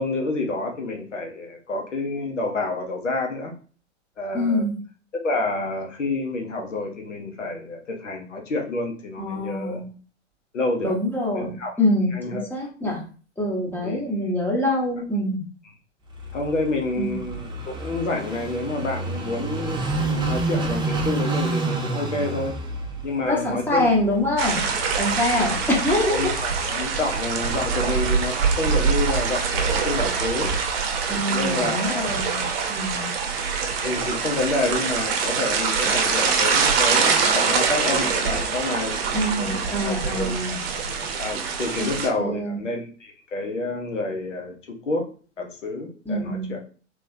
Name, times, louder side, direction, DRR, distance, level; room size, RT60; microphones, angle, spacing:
voice 1, 0.0-3.5 4.2-4.6 5.1-9.8 10.5-10.9 11.3-11.7 12.1-12.5 13.8-14.3 15.6-15.7 16.3-22.5 23.0-23.9 25.4-25.6 26.1-30.5 31.2-32.2 33.8-39.0 39.3-40.6 41.2-45.1 45.4-46.6, left 2 dB, 80° left, 2 dB, 1.0 m, -28 dB
voice 2, 4.3-4.7 9.2-9.9 10.8-13.0 13.4-15.4 17.0-17.2 23.2-24.6 25.0-26.3 31.1-33.1 39.1-40.6 42.2-42.6 46.1-46.5, left 1 dB, 5° left, -3 dB, 1.2 m, -25 dB
Car passing by / Idling, 16.1-26.8, right 2 dB, 15° right, 0.7 m, -30 dB
sound 1, 24.4-42.1, right 5 dB, 55° right, 0.9 m, -24 dB
3.3 x 3.2 x 2.7 m, 0.39 s
figure-of-eight pair, 100°, 36 cm